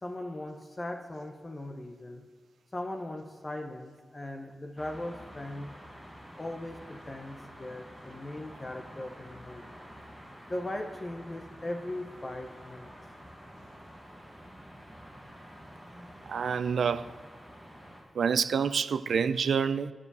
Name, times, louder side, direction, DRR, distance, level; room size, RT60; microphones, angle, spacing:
voice 1, 0.0-2.2 2.7-5.7 6.4-9.8 10.5-12.9, left 1 dB, 20° left, 0.6 m, -39 dB
Waiting at Train Station Hamburg-Harburg, 4.8-18.0, equal, ahead, 1.2 m, -49 dB
voice 2, 16.3-17.1 18.1-19.9, right 6 dB, 80° right, 0.3 m, -27 dB
9.7 x 4.9 x 6.6 m
wide cardioid pair, 180°, 0 cm